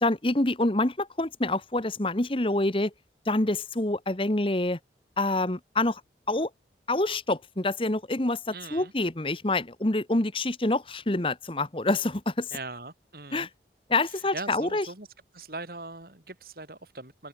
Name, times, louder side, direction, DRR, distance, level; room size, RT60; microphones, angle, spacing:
voice 1, 0.0-2.9 3.3-4.8 5.2-6.0 6.3-6.5 6.9-12.5 13.3-13.5 13.9-14.9, left 2 dB, 30° left, 1.3 m, -26 dB
voice 2, 8.5-8.9 12.5-13.5 14.3-15.1 15.3-17.3, right 3 dB, 55° right, 3.4 m, -40 dB
open air
head